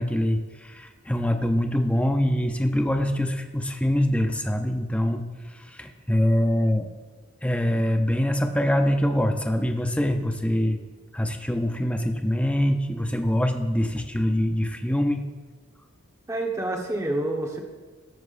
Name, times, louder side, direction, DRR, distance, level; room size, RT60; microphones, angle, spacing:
voice 1, 0.0-5.2 5.5-6.9 7.4-10.8 11.1-15.3, equal, 5° left, 5 dB, 0.6 m, -24 dB
voice 2, 16.3-17.6, right 2 dB, 15° right, 1 dB, 1.2 m, -28 dB
18.5 x 7.1 x 2.5 m, 1.4 s
head